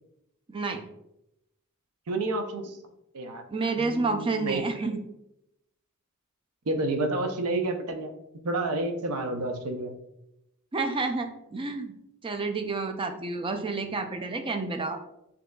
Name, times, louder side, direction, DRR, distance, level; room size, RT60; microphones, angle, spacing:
voice 1, 0.5-0.8 3.5-5.0 10.7-11.9 12.2-15.0, right 3 dB, 25° right, 6 dB, 0.4 m, -29 dB
voice 2, 2.1-2.8 3.1-3.4 3.8-4.6 6.7-8.1 8.4-9.9, right 2 dB, 85° right, 5 dB, 0.6 m, -30 dB
6.2 x 2.8 x 2.2 m, 0.84 s
head